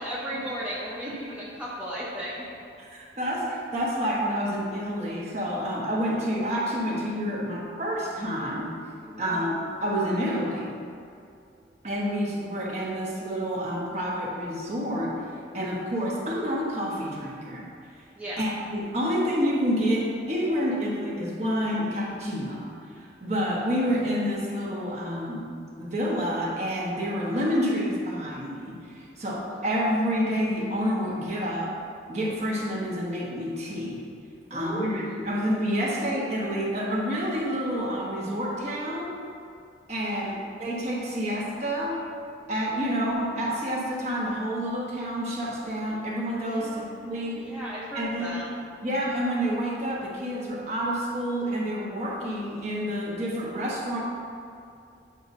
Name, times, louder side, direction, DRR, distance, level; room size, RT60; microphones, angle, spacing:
voice 1, 0.0-2.5 9.0-9.4 18.2-18.4 29.3-29.6 34.5-35.2 40.0-40.4 46.4-48.5, equal, 10° right, -8 dB, 0.8 m, -36 dB
voice 2, 2.9-8.7 9.2-9.5 9.8-10.7 11.8-15.2 15.5-17.7 18.4-22.7 23.0-25.5 25.8-31.8 32.1-34.0 34.5-39.2 39.9-42.1 42.5-46.7 47.0-47.4 47.9-48.4 48.8-54.0, equal, 40° right, -4 dB, 1.2 m, -28 dB
8.8 x 5.3 x 2.6 m, 2.4 s
head